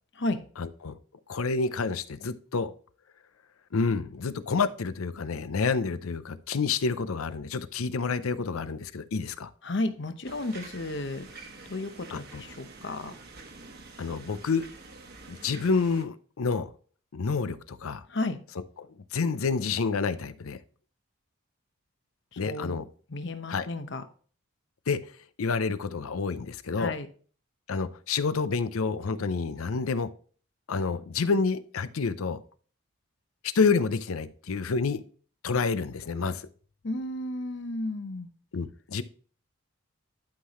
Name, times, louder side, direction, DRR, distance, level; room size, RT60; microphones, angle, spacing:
voice 1, 0.6-0.9 1.3-2.7 3.7-9.5 12.1-12.4 14.0-14.7 15.3-16.7 17.1-18.0 18.8-20.6 22.4-22.9 23.5-23.7 24.9-25.0 25.4-26.9 27.7-30.1 30.7-32.4 33.4-35.0 35.4-36.5 38.5-39.0, left 4 dB, 85° left, 14 dB, 0.6 m, -28 dB
voice 2, 9.6-11.3 11.7-13.1 18.1-18.4 22.3-22.8 23.1-24.0 26.8-27.1 36.8-38.3, left 2 dB, 55° left, 9 dB, 0.8 m, -33 dB
sound 1, 10.2-16.0, right 3 dB, 45° right, 1.1 m, -47 dB
11.5 x 5.7 x 3.0 m, 0.43 s
head